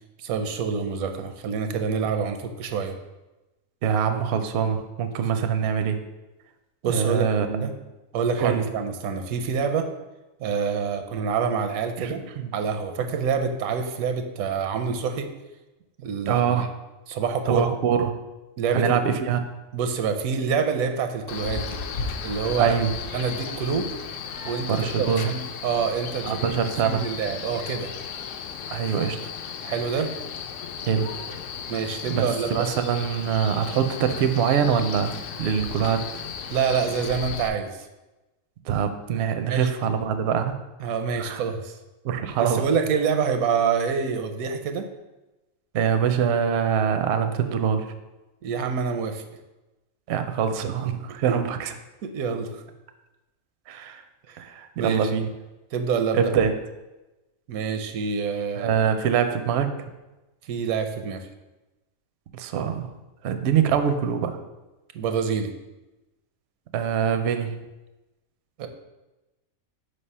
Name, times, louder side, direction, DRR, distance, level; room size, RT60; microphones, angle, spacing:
voice 1, 0.2-3.0 6.8-7.3 7.6-7.7 8.1-9.9 10.4-12.2 12.5-15.3 16.0-16.7 17.1-17.8 18.6-19.0 19.7-21.8 22.2-22.7 23.1-23.9 24.4-26.6 26.8-27.9 29.6-30.1 31.7-32.7 36.5-37.9 39.5-39.7 40.8-41.8 42.4-44.9 48.4-49.3 52.0-52.6 54.3-54.4 54.8-55.1 55.7-56.2 57.5-58.7 60.4-61.3 64.9-65.5 68.6-68.7, right 6 dB, 85° right, 6 dB, 1.1 m, -26 dB
voice 2, 3.8-6.0 6.8-7.7 8.4-8.7 12.0-12.5 16.3-16.6 17.5-18.1 18.7-19.5 22.6-22.9 24.7-25.3 26.2-27.0 28.7-29.3 30.9-31.1 32.1-35.1 35.4-36.0 38.6-40.5 41.2-41.4 42.0-42.7 45.7-47.9 50.1-51.7 53.7-54.0 54.4-55.3 56.1-56.6 58.6-59.7 62.3-62.9 63.2-64.4 66.7-67.5, right 7 dB, 65° right, 8 dB, 0.7 m, -24 dB
Male speech man speaking, 21.3-37.5, left 6 dB, 70° left, 0.9 m, -35 dB
5.2 x 3.4 x 5.4 m, 1.0 s
omnidirectional pair, 1.4 m